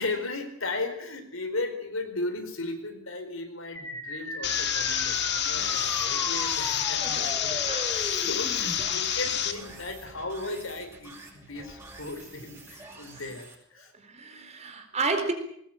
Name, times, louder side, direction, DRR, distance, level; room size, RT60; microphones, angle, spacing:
voice 1, 0.0-7.6 7.9-13.9, left 2 dB, 75° left, 6 dB, 4.6 m, -36 dB
sound 1, 3.8-8.8, equal, 10° left, 4.3 m, -37 dB
sound 2, 4.4-9.5, left 9 dB, 55° left, 2.1 m, -28 dB
sound 3, 5.5-13.5, right 2 dB, 15° right, 6.7 m, -48 dB
voice 2, 14.0-15.3, right 3 dB, 35° right, 6 dB, 4.0 m, -32 dB
21.0 x 19.5 x 9.0 m, 0.70 s
head